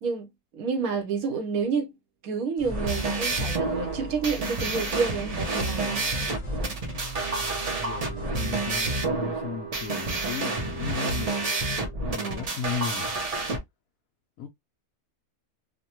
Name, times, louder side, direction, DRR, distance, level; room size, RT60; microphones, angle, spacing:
voice 1, 0.0-1.9 2.2-6.0 12.2-12.5, right 5 dB, 85° right, 1.3 m, -29 dB
sound 1, 2.6-9.0, right 3 dB, 25° left, 0.9 m, -40 dB
sound 2, 2.6-13.6, right 2 dB, 40° right, 0.6 m, -29 dB
sound 3, 7.2-12.1, right 8 dB, 60° right, 1.2 m, -42 dB
voice 2, 7.8-11.5 12.0-13.1 14.4-14.5, left 6 dB, 80° left, 1.0 m, -35 dB
3.0 x 2.2 x 2.7 m
omnidirectional pair, 1.5 m